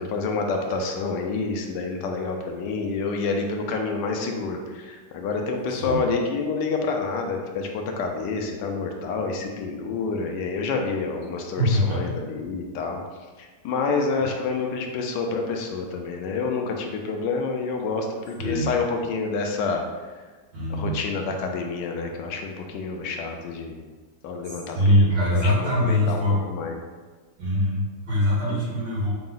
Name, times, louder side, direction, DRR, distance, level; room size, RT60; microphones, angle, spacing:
voice 1, 0.0-13.0 13.4-19.8 20.7-23.8 24.2-26.8 28.5-28.6, left 4 dB, 80° left, 3 dB, 1.2 m, -28 dB
voice 2, 11.6-12.0 18.4-18.7 20.5-21.0 24.5-26.4 27.4-29.1, left 1 dB, 80° right, -7 dB, 2.1 m, -22 dB
4.6 x 2.0 x 3.8 m, 1.4 s
omnidirectional pair, 1.9 m